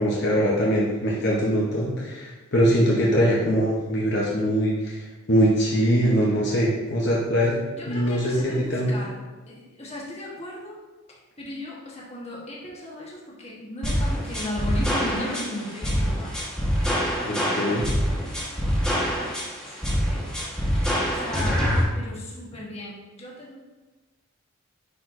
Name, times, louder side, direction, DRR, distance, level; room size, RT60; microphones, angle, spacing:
voice 1, 0.0-7.6 7.9-8.9 17.3-17.8, equal, 55° left, -4 dB, 0.8 m, -22 dB
voice 2, 7.8-9.2 9.5-10.7 11.1-16.4 16.7-17.9 18.2-20.3 21.1-21.6 21.9-23.6, left 1 dB, 30° left, -4 dB, 1.3 m, -37 dB
sound 1, 13.8-21.8, equal, 5° left, 1.2 m, -25 dB
9.8 x 4.5 x 2.6 m, 1.2 s
head